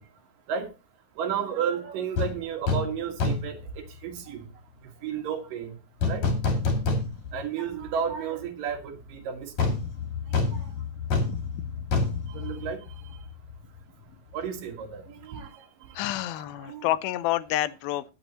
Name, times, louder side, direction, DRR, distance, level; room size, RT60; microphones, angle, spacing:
voice 1, 1.2-4.5 5.0-5.7 6.1-6.2 7.3-9.7 10.5-10.6 12.3-12.8 14.3-15.6 16.4-16.9, right 7 dB, 65° right, 3.2 m, -32 dB
sound 1, 2.2-2.3 2.7-2.9 3.2-3.6 6.0-7.4 7.8-7.9 9.6-13.2 13.5-13.6, left 3 dB, 50° left, 3.6 m, -27 dB
voice 2, 16.0-18.0, left 14 dB, 85° left, 2.5 m, -28 dB
21.0 x 6.9 x 2.9 m
omnidirectional pair, 4.3 m